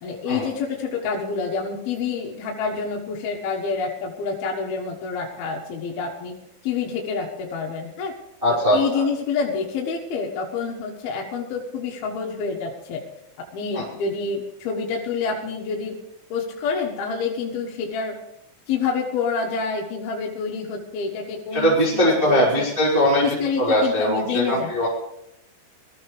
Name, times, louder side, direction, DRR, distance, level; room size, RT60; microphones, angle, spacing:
voice 1, 0.0-6.3 6.6-8.1 8.5-13.0 13.4-15.9 16.3-18.2 18.7-22.7 23.2-24.9, left 5 dB, 65° left, -1 dB, 2.9 m, -28 dB
voice 2, 8.4-9.0 13.7-13.8 21.5-23.2 23.6-24.9, equal, 10° right, -7 dB, 3.6 m, -20 dB
21.5 x 14.0 x 3.3 m, 0.83 s
omnidirectional pair, 5.4 m